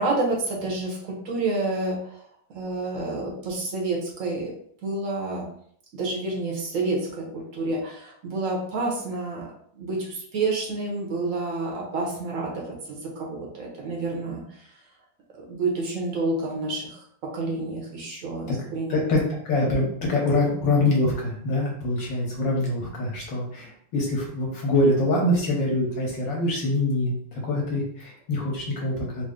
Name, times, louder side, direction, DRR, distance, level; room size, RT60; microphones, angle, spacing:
voice 1, 0.0-2.2 2.5-4.5 4.8-5.5 5.9-14.8 15.3-19.0, right 2 dB, 60° right, -1 dB, 0.9 m, -29 dB
voice 2, 18.9-19.2 19.4-29.2, left 2 dB, 70° left, -3 dB, 1.6 m, -24 dB
3.9 x 2.0 x 3.6 m, 0.63 s
omnidirectional pair, 2.2 m